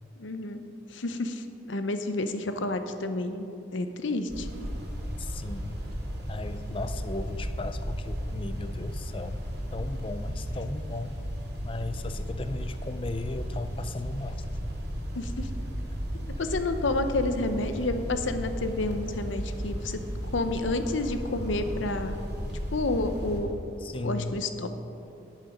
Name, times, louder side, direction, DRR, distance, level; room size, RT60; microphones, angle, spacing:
voice 1, 0.2-0.6 0.9-3.4 3.7-4.5 15.2-15.5 16.4-20.0 20.3-22.2 22.7-23.6 24.0-24.7, left 2 dB, 85° left, 8 dB, 0.8 m, -30 dB
sound 1, 4.3-23.4, equal, 55° right, 2.5 m, -35 dB
voice 2, 5.2-5.7 6.3-9.4 9.7-11.2 11.6-14.4 23.8-24.4, left 2 dB, 30° left, 11 dB, 0.5 m, -36 dB
11.0 x 9.0 x 5.2 m, 2.8 s
head